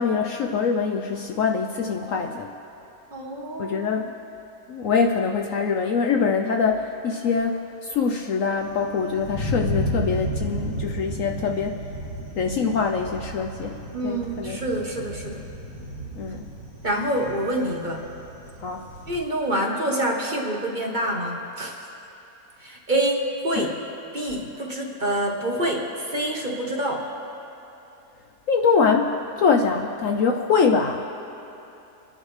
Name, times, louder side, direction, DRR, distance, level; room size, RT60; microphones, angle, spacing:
voice 1, 0.0-2.5 3.6-4.1 4.7-11.8 12.4-14.6 16.1-16.5 18.6-18.9 23.6-23.7 28.5-31.1, left 5 dB, 65° left, 4 dB, 0.9 m, -24 dB
voice 2, 3.1-3.9 13.9-15.4 16.8-18.0 19.1-21.8 22.6-23.8 24.1-27.1, right 1 dB, 30° right, 0 dB, 1.2 m, -26 dB
Thunder, 8.6-19.2, equal, 85° left, 3.0 m, -33 dB
29.0 x 10.0 x 3.2 m, 2.9 s
omnidirectional pair, 1.7 m